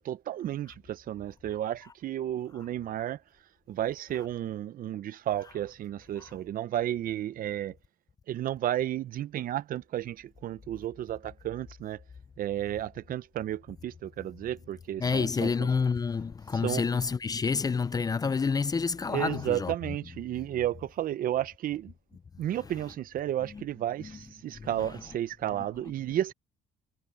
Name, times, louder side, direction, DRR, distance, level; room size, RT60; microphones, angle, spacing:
voice 1, 0.0-3.2 3.7-7.8 8.3-12.0 12.4-15.7 16.6-16.8 19.1-21.9 22.4-26.3, right 12 dB, 55° right, 0.7 m, -32 dB
voice 2, 15.0-19.7 23.5-23.6 24.0-24.1 24.5-24.9, left 5 dB, 20° left, 0.5 m, -29 dB
cardioid pair, 110°, 17 cm